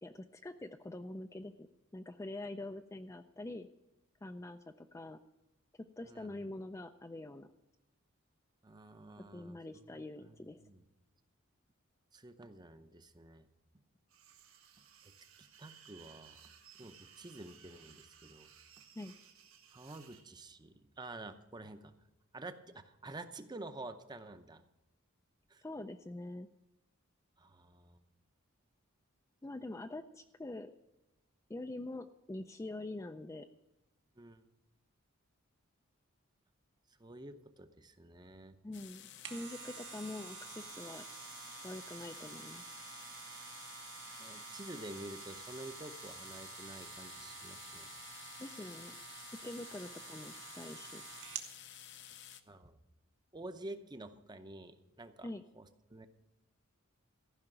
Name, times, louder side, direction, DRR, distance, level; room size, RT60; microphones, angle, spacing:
voice 1, 0.0-1.7 1.9-3.7 4.2-5.2 6.0-7.5 9.2-10.6 19.0-19.1 25.6-26.5 29.4-30.7 31.5-33.5 38.6-41.1 41.6-42.8 48.4-49.0 49.4-51.0 55.2-55.4, left 2 dB, 15° left, 8 dB, 0.4 m, -45 dB
voice 2, 6.0-6.4 8.6-10.4 10.6-10.8 12.1-13.5 15.4-16.4 16.8-18.5 19.7-21.9 22.3-24.6 25.5-25.6 27.4-28.0 34.2-34.4 37.0-38.6 44.2-47.9 52.5-52.8 53.3-56.1, right 2 dB, 20° right, 9 dB, 0.7 m, -49 dB
sound 1, 14.1-20.2, right 8 dB, 90° right, 1.5 m, -59 dB
sound 2, 38.7-52.4, left 10 dB, 55° left, 0.7 m, -53 dB
sound 3, 39.0-51.5 52.0-52.1, right 8 dB, 60° right, 1.2 m, -50 dB
14.5 x 5.7 x 8.9 m, 0.96 s
head